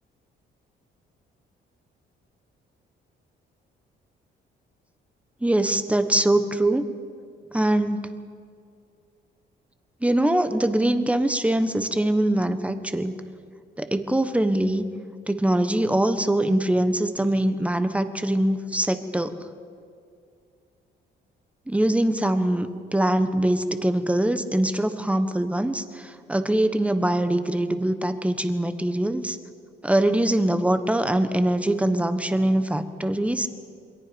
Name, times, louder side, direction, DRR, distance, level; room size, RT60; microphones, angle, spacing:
voice 1, 5.4-6.8 7.5-8.1 10.0-13.1 13.8-14.8 15.3-19.4 21.7-25.8 26.3-29.4 29.8-33.5, right 1 dB, 5° right, 9 dB, 1.4 m, -23 dB
28.0 x 22.0 x 5.4 m, 2.3 s
cardioid pair, 90°, 20 cm